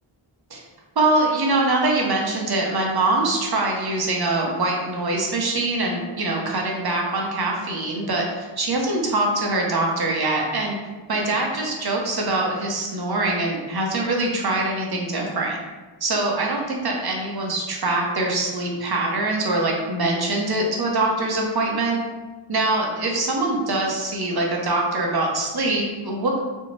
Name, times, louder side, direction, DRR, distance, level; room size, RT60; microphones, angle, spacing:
voice 1, 1.0-10.8 11.1-15.6 16.0-22.0 22.5-26.4, right 2 dB, 50° right, 0 dB, 0.6 m, -23 dB
2.6 x 2.1 x 3.0 m, 1.2 s
wide cardioid pair, 45°, 49 cm